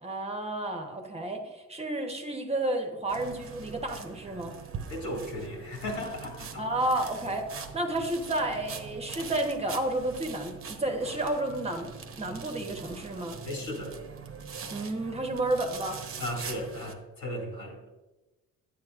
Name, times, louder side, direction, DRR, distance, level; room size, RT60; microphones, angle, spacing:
voice 1, 0.0-4.5 6.6-13.4 14.7-16.0, right 1 dB, 20° right, 3 dB, 1.0 m, -31 dB
sound 1, 3.1-16.9, right 6 dB, 45° right, 0.9 m, -42 dB
voice 2, 4.9-6.7 13.4-14.0 16.2-17.9, left 1 dB, 75° left, -1 dB, 2.3 m, -36 dB
10.5 x 8.6 x 2.5 m, 1.1 s
cardioid pair, 90°, 30 cm